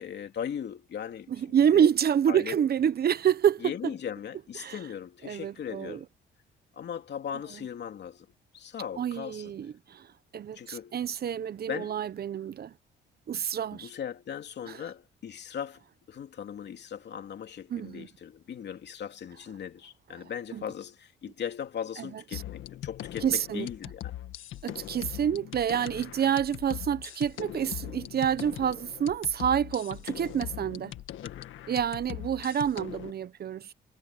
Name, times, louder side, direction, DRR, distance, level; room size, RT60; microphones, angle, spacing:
voice 1, 0.0-1.9 2.3-2.6 3.6-6.0 6.7-8.3 8.5-9.5 10.5-11.0 11.7-12.0 13.7-15.8 16.1-24.1 31.2-31.5, left 8 dB, 60° left, 2.8 m, -38 dB
voice 2, 1.3-3.7 4.6-4.8 5.2-6.0 9.0-10.1 10.3-12.7 13.3-13.9 14.7-14.8 17.7-18.1 20.5-20.6 22.0-22.4 23.2-23.7 24.6-30.9 31.7-33.7, right 9 dB, 50° right, 1.0 m, -28 dB
sound 1, 22.3-33.1, left 13 dB, 80° left, 1.7 m, -41 dB
cardioid pair, 90°, 20 cm